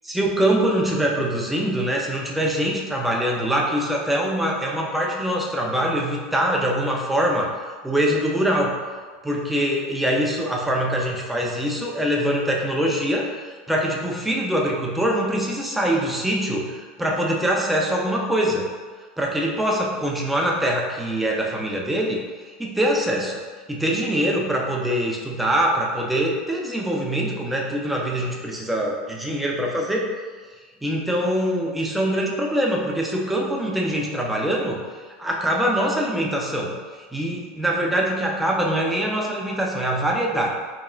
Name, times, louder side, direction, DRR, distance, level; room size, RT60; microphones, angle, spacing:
voice 1, 0.0-7.5 7.8-8.7 9.2-18.7 19.2-23.4 23.7-30.1 30.8-34.8 35.2-40.5, right 1 dB, 5° right, -2 dB, 0.4 m, -23 dB
3.1 x 3.0 x 3.7 m, 1.5 s
supercardioid pair, 180°, 4 cm